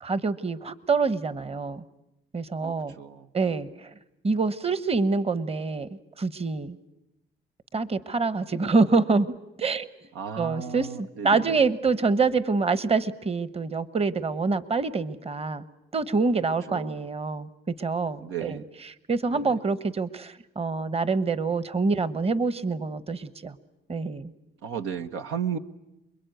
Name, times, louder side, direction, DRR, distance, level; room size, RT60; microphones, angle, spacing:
voice 1, 0.0-1.8 2.3-3.0 3.3-3.7 4.2-5.9 6.2-6.8 7.7-9.3 9.6-9.9 10.4-15.6 15.9-17.5 17.8-18.6 19.1-23.5 23.9-24.3, right 4 dB, 30° right, 15 dB, 1.2 m, -26 dB
voice 2, 2.6-3.3 10.1-11.6 16.7-17.0 18.2-18.7 19.3-19.5 24.6-25.6, right 8 dB, 90° right, 7 dB, 1.1 m, -34 dB
28.5 x 21.5 x 9.3 m, 0.89 s
cardioid pair, 90°, 20 cm